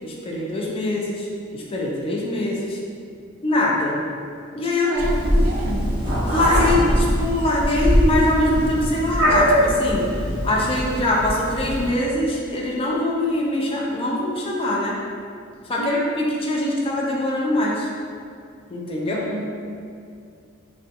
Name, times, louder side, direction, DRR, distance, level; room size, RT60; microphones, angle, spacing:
voice 1, 0.0-2.8 3.4-4.0 4.5-4.9 5.3-5.4 6.3-10.0 10.4-15.0 15.6-17.9 18.7-19.2, left 1 dB, 25° left, -3 dB, 0.3 m, -23 dB
voice 2, 4.8-5.9 15.8-16.0 19.1-19.6, right 2 dB, 80° right, -2 dB, 0.4 m, -31 dB
Meow, 5.0-11.9, equal, 20° right, 0.7 m, -21 dB
2.4 x 2.3 x 2.6 m, 2.4 s
head